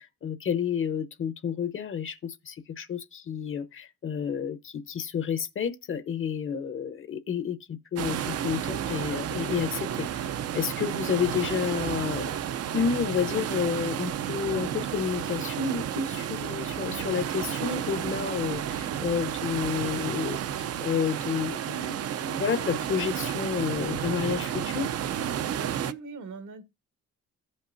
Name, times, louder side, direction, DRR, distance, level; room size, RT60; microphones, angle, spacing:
voice 1, 0.0-10.1 10.5-12.3 12.7-20.4 20.8-24.9, left 7 dB, 45° left, 0.8 m, -30 dB
sound 1, 8.0-25.9, right 9 dB, 55° right, 0.5 m, -32 dB
voice 2, 25.3-26.6, right 4 dB, 75° right, 1.4 m, -41 dB
15.0 x 5.4 x 2.6 m
cardioid pair, 90°, 30 cm